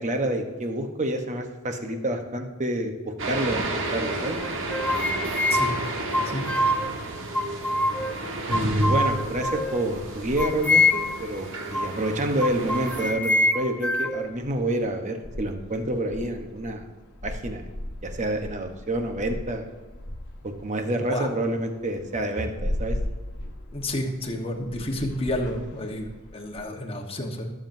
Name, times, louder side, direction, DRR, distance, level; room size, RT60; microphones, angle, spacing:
voice 1, 0.0-4.4 8.5-16.9 17.2-17.7 18.0-19.7 20.4-23.0, right 1 dB, 35° right, 5 dB, 1.0 m, -28 dB
sound 1, 3.2-13.1, right 2 dB, 60° right, 1.4 m, -31 dB
sound 2, 4.4-6.9 7.3-8.2 8.5-9.9 10.4-11.3 11.7-12.0 12.4-14.3, left 2 dB, 5° left, 0.3 m, -25 dB
sound 3, 8.7-26.6, left 1 dB, 50° left, 1.3 m, -39 dB
voice 2, 23.7-27.5, left 1 dB, 25° left, 1 dB, 1.2 m, -30 dB
19.5 x 7.3 x 2.7 m, 1.3 s
head